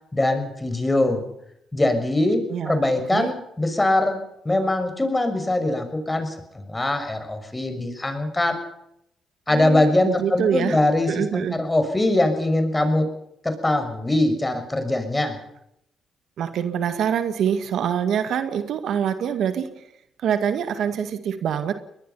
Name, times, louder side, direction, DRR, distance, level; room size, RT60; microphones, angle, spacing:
voice 1, 0.1-1.2 1.7-4.2 4.4-8.6 9.5-13.1 13.4-15.4, left 1 dB, 20° left, 8 dB, 6.3 m, -22 dB
voice 2, 2.5-2.8 3.1-3.3 9.5-10.8 11.1-11.6 16.4-19.9 20.2-21.8, right 8 dB, 70° right, 10 dB, 2.0 m, -25 dB
23.0 x 20.5 x 5.7 m, 0.79 s
supercardioid pair, 65°, 0 cm